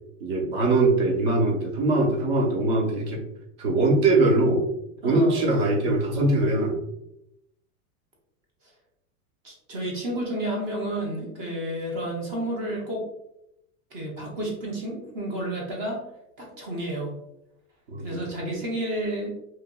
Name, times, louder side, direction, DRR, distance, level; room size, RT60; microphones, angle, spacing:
voice 1, 0.2-3.2 3.6-4.6 5.0-6.8 17.9-18.2, right 2 dB, 40° right, 0 dB, 0.8 m, -22 dB
voice 2, 5.0-5.6 9.4-13.0 13.9-16.0 16.4-17.1 18.0-19.3, right 1 dB, 20° right, -1 dB, 0.4 m, -31 dB
2.9 x 2.5 x 2.2 m, 0.82 s
supercardioid pair, 155°, 43 cm